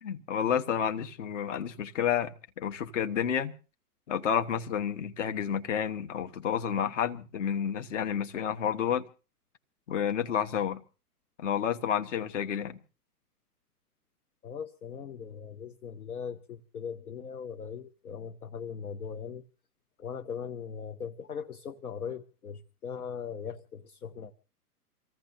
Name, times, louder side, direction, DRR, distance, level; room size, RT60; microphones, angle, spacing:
voice 1, 0.0-3.5 4.1-9.0 9.9-10.8 11.4-12.8, left 8 dB, 50° left, 1.2 m, -30 dB
voice 2, 14.4-19.4 20.0-24.3, left 7 dB, 65° left, 0.9 m, -39 dB
27.5 x 15.0 x 2.6 m
figure-of-eight pair, 115°, 46 cm